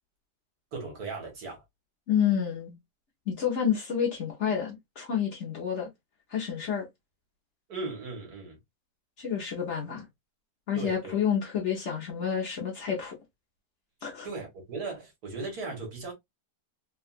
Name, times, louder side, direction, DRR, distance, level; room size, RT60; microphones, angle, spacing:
voice 1, 0.7-1.6 7.7-8.6 10.7-11.2 14.2-16.1, right 3 dB, 70° right, 1.8 m, -37 dB
voice 2, 2.1-2.7 3.3-5.9 6.3-6.8 9.2-10.0 10.7-13.1 14.0-14.3, left 8 dB, 50° left, 1.1 m, -29 dB
3.6 x 2.3 x 2.3 m
omnidirectional pair, 1.8 m